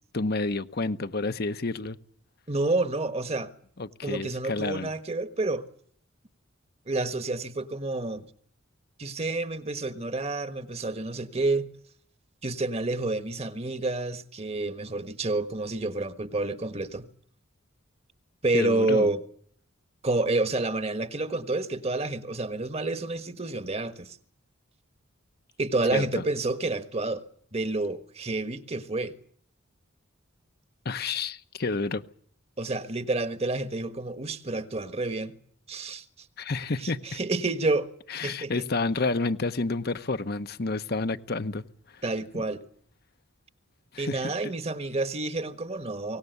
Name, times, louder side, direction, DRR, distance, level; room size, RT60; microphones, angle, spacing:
voice 1, 0.1-2.0 3.8-4.9 18.5-19.1 25.9-26.2 30.8-32.0 36.4-37.2 38.1-41.6 41.9-42.0 42.3-42.4 43.9-44.5, left 3 dB, 50° left, 0.9 m, -30 dB
voice 2, 2.5-3.5 4.0-5.7 6.9-8.3 9.0-11.7 12.4-17.1 18.4-19.2 20.0-24.2 25.6-27.2 27.5-29.1 32.6-35.3 35.7-36.0 36.8-37.9 38.2-38.6 42.0-42.6 44.0-46.2, right 2 dB, 30° right, 1.4 m, -29 dB
23.5 x 19.0 x 8.1 m
head